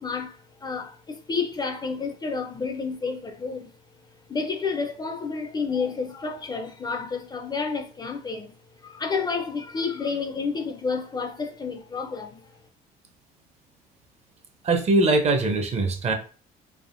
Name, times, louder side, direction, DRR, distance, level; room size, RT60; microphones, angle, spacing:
voice 1, 0.0-3.7 4.3-8.5 8.8-12.5, left 5 dB, 25° left, 0.4 m, -30 dB
voice 2, 14.6-16.1, right 2 dB, 40° right, 0.6 m, -21 dB
3.4 x 2.1 x 2.5 m
cardioid pair, 110°, 17 cm